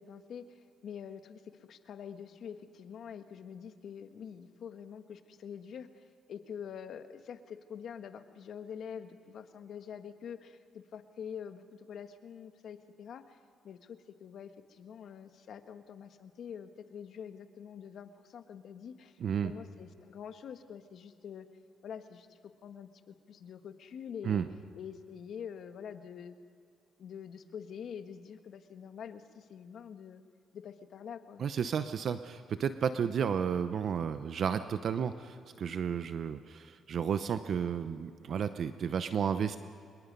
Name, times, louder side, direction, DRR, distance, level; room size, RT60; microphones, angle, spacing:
voice 1, 0.0-1.4 1.7-6.0 6.3-13.4 13.6-21.5 21.8-24.4 24.7-26.3 27.0-30.2 30.5-31.4, left 7 dB, 65° left, 8 dB, 1.4 m, -46 dB
voice 2, 19.2-19.5 24.2-24.5 31.4-39.6, right 7 dB, 60° right, 11 dB, 0.8 m, -32 dB
25.0 x 22.0 x 5.4 m, 2.4 s
cardioid pair, 90°, 0 cm